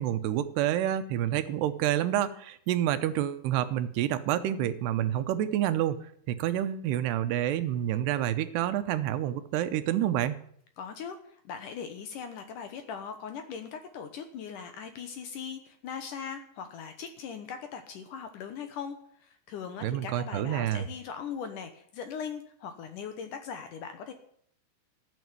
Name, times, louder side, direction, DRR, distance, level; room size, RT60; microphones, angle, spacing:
voice 1, 0.0-6.0 6.3-10.4 19.8-20.9, right 12 dB, 85° right, 10 dB, 3.0 m, -28 dB
voice 2, 10.8-24.1, left 7 dB, 70° left, 7 dB, 2.2 m, -40 dB
14.0 x 7.1 x 9.4 m, 0.65 s
omnidirectional pair, 4.6 m